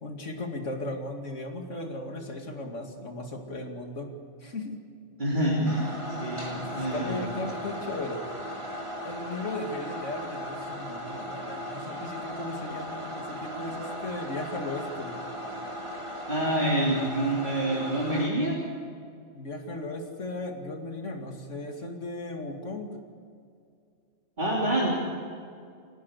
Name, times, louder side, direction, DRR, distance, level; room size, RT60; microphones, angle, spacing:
voice 1, 0.0-4.1 4.4-4.8 5.6-5.7 6.5-8.2 9.0-15.2 19.3-22.9, left 2 dB, 85° left, 3 dB, 2.6 m, -36 dB
voice 2, 5.2-6.5 6.7-7.3 16.3-18.6 24.4-24.9, right 1 dB, 40° right, -5 dB, 3.6 m, -27 dB
sound 1, 5.7-18.3, equal, 25° right, 2.8 m, -37 dB
28.5 x 11.5 x 8.2 m, 2.3 s
omnidirectional pair, 1.2 m